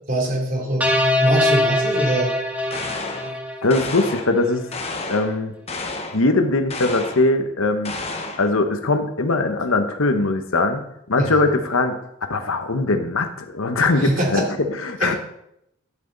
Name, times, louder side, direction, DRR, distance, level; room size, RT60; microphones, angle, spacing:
voice 1, 0.1-0.9 1.2-2.3 11.2-11.3 14.0-14.5 15.0-15.2, right 1 dB, 40° right, -1 dB, 3.1 m, -23 dB
sound 1, 0.8-4.1, left 1 dB, 10° right, 1.5 m, -22 dB
sound 2, 2.7-3.3 3.7-4.3 4.7-5.3 5.7-6.2 6.7-7.3 7.8-8.5, left 3 dB, 30° left, 1.3 m, -31 dB
voice 2, 3.2-4.7 5.1-5.5 6.1-8.0 8.4-14.4 14.8-15.1, left 2 dB, 80° left, 7 dB, 1.1 m, -21 dB
11.5 x 8.4 x 4.0 m, 0.77 s
head